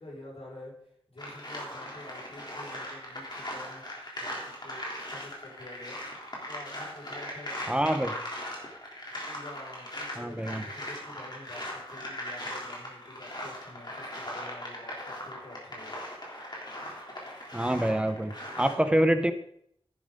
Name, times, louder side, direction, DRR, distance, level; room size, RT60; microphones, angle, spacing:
voice 1, 0.0-3.8 4.1-6.0 6.4-8.1 9.0-16.0, left 1 dB, 75° left, -4 dB, 5.3 m, -48 dB
sound 1, 1.2-18.7, equal, 45° left, 3.3 m, -39 dB
voice 2, 7.7-8.1 10.2-10.6 17.5-19.3, right 1 dB, 10° right, 7 dB, 1.1 m, -26 dB
11.0 x 10.5 x 3.8 m, 0.69 s
wide cardioid pair, 65°, 10 cm